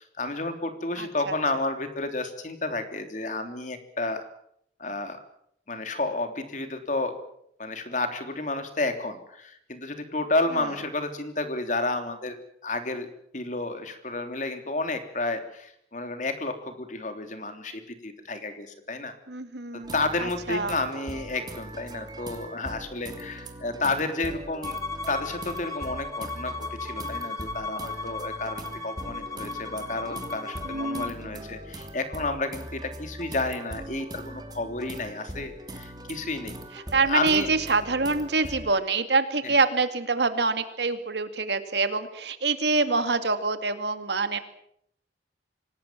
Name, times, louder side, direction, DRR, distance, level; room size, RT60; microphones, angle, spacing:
voice 1, 0.0-4.2 4.8-5.3 5.7-7.1 7.6-12.4 12.6-13.1 13.3-19.1 19.7-24.8 25.1-36.6 37.0-37.5 39.4-39.5, left 2 dB, 45° left, 7 dB, 3.4 m, -31 dB
voice 2, 1.0-1.3 19.3-19.9 20.2-20.8 30.6-31.5 36.9-44.4, right 3 dB, 75° right, 9 dB, 2.4 m, -26 dB
sound 1, 19.8-38.7, right 1 dB, 25° right, 2.9 m, -41 dB
Bowed string instrument, 24.6-31.2, left 3 dB, 20° left, 1.3 m, -36 dB
25.5 x 19.0 x 7.6 m, 0.71 s
head